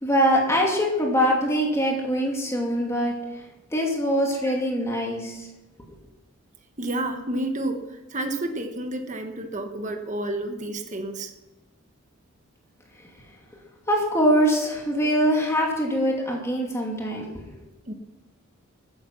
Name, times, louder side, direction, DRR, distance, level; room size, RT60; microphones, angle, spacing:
voice 1, 0.0-3.4 3.7-5.5 13.9-17.3, equal, 15° left, -1 dB, 2.5 m, -23 dB
voice 2, 6.8-11.3 17.9-18.0, right 1 dB, 35° right, 5 dB, 1.4 m, -30 dB
15.0 x 10.0 x 6.1 m, 1.0 s
head